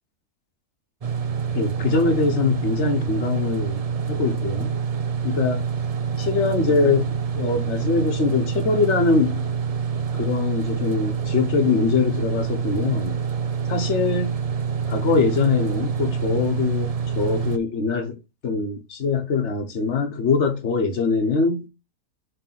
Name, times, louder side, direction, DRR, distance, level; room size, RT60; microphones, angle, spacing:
sound 1, 1.0-17.6, right 6 dB, 65° right, 0.3 m, -26 dB
voice 1, 1.5-3.8 4.1-4.8 5.2-5.6 6.2-9.5 10.1-13.2 13.7-14.4 14.9-21.7, left 4 dB, 50° left, 1.4 m, -23 dB
5.6 x 3.4 x 5.8 m
omnidirectional pair, 1.6 m